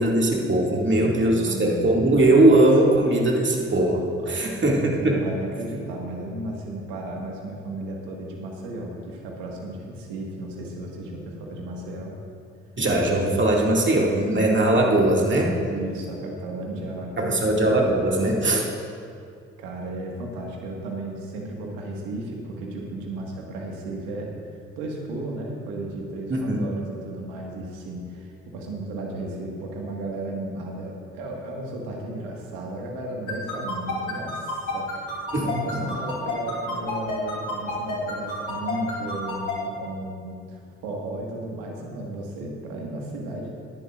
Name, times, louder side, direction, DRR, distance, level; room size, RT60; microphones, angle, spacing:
voice 1, 0.0-5.2 12.8-15.6 17.2-18.7 26.3-26.7 35.3-35.6, right 1 dB, 35° right, -1 dB, 2.3 m, -20 dB
voice 2, 0.9-1.9 4.2-4.5 5.0-12.2 15.7-17.4 18.5-18.6 19.6-24.4 24.8-43.5, right 2 dB, 80° right, 0 dB, 1.8 m, -34 dB
sound 1, 33.3-39.5, left 3 dB, 65° left, 3.3 m, -29 dB
18.5 x 11.0 x 2.5 m, 2.3 s
hypercardioid pair, 40°, 34 cm